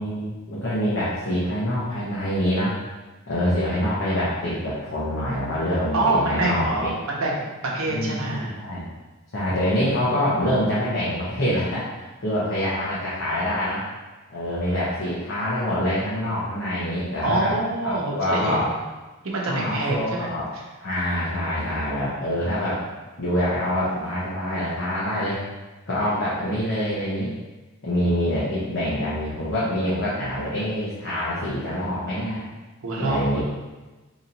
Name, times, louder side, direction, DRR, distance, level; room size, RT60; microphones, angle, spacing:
voice 1, 0.0-2.8 3.3-6.9 7.9-8.8 9.3-11.9 12.2-13.9 14.3-17.5 17.8-18.7 19.5-20.4 20.8-22.8 23.2-25.4 25.9-27.3 27.8-32.5 33.0-33.4, equal, 55° left, -9 dB, 0.9 m, -25 dB
voice 2, 5.9-8.6 17.2-18.7 19.2-20.6 32.8-33.4, right 2 dB, 70° right, -2 dB, 0.8 m, -26 dB
2.9 x 2.8 x 3.9 m, 1.2 s
head